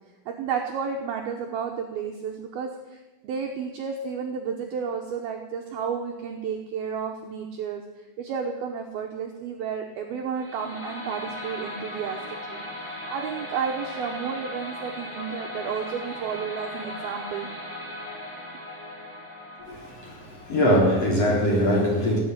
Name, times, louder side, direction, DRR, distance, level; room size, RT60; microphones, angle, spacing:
voice 1, 0.3-12.2 12.5-17.5, right 6 dB, 70° right, 2 dB, 2.4 m, -32 dB
sound 1, 10.3-21.4, left 1 dB, 10° left, 1.7 m, -38 dB
voice 2, 19.6-22.2, equal, 35° left, -2 dB, 4.4 m, -22 dB
18.0 x 8.2 x 9.6 m, 1.2 s
omnidirectional pair, 5.6 m